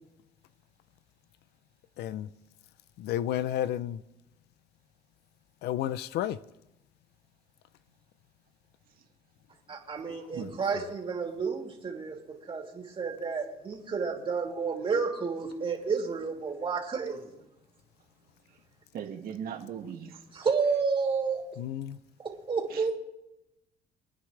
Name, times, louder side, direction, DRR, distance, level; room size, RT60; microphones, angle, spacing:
voice 1, 3.0-4.0 5.6-6.4 21.6-22.0, left 12 dB, 75° left, 0.6 m, -31 dB
voice 2, 9.7-17.3 20.3-21.4 22.2-22.9, right 5 dB, 30° right, 3.0 m, -31 dB
voice 3, 18.9-20.1 22.7-22.9, right 8 dB, 60° right, 2.1 m, -38 dB
27.0 x 9.7 x 3.3 m
cardioid pair, 110°, 17 cm